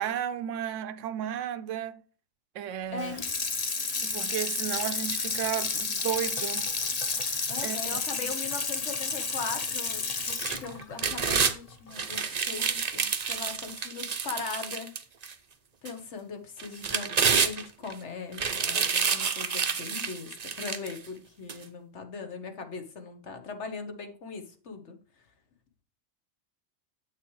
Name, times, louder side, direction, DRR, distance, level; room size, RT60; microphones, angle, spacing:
voice 1, 0.0-2.0 2.5-3.2 4.0-6.7 7.6-8.0, right 10 dB, 75° right, 0.9 m, -33 dB
Water tap faucet / Sink (filling or washing), 3.0-12.2 12.6-12.7, left 4 dB, 35° left, 0.8 m, -31 dB
voice 2, 7.5-14.9 15.8-25.0, left 4 dB, 60° left, 1.4 m, -39 dB
sound 1, 10.2-11.6 11.9-15.3 15.9-16.0 16.6-17.9 18.3-21.0 21.5-21.6, right 6 dB, 40° right, 0.6 m, -28 dB
7.9 x 6.6 x 3.1 m
omnidirectional pair, 1.3 m